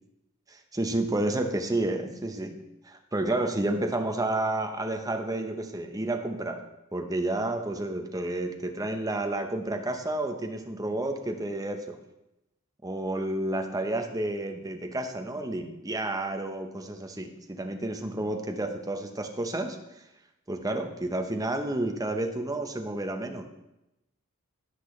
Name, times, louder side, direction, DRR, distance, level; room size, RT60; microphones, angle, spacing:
voice 1, 0.5-2.6 2.8-6.6 6.9-12.0 12.8-19.8 20.5-23.4, right 2 dB, 15° right, 5 dB, 0.9 m, -30 dB
16.5 x 6.0 x 3.2 m, 0.92 s
head